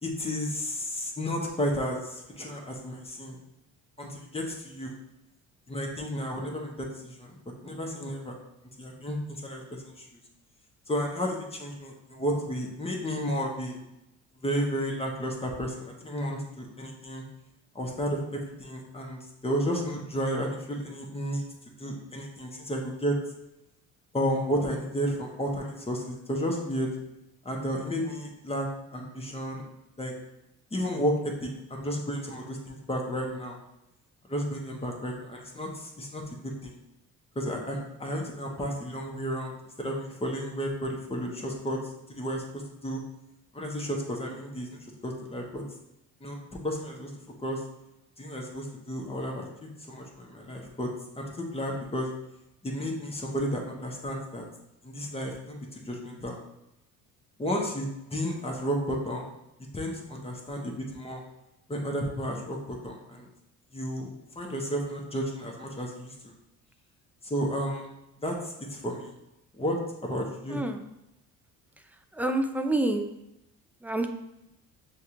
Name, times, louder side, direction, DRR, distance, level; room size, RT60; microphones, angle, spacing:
voice 1, 0.0-3.4 4.0-4.9 5.7-7.3 7.6-8.3 8.8-10.1 10.9-13.8 14.4-17.2 17.7-21.4 21.8-23.2 24.1-26.9 27.4-29.6 30.0-30.1 30.7-33.6 34.3-36.8 37.3-41.8 42.2-43.0 43.5-45.6 46.2-46.4 46.6-47.1 47.4-47.6 48.2-50.9 51.2-52.1 52.6-54.4 54.8-56.4 57.4-59.3 59.7-61.2 61.7-63.3 63.7-66.3 67.2-67.9 68.2-69.1 69.6-70.6, equal, 15° left, 0 dB, 1.2 m, -32 dB
voice 2, 72.2-73.1 73.8-74.1, right 2 dB, 5° right, 6 dB, 0.4 m, -27 dB
6.4 x 2.5 x 3.0 m, 0.89 s
supercardioid pair, 75°, 35 cm